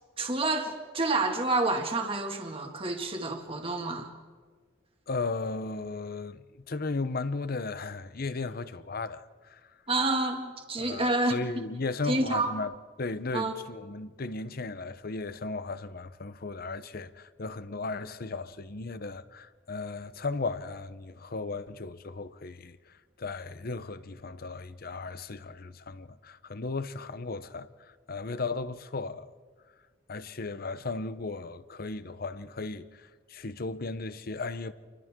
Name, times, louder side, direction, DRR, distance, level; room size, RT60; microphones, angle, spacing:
voice 1, 0.2-4.1 9.9-11.3 12.1-12.5 13.3-13.5, right 2 dB, 30° right, 2.0 m, -28 dB
voice 2, 5.1-9.6 10.8-12.7 13.0-22.8 23.2-27.7 28.1-29.3 30.1-34.7, left 3 dB, 50° left, 0.8 m, -36 dB
29.5 x 24.5 x 3.7 m
head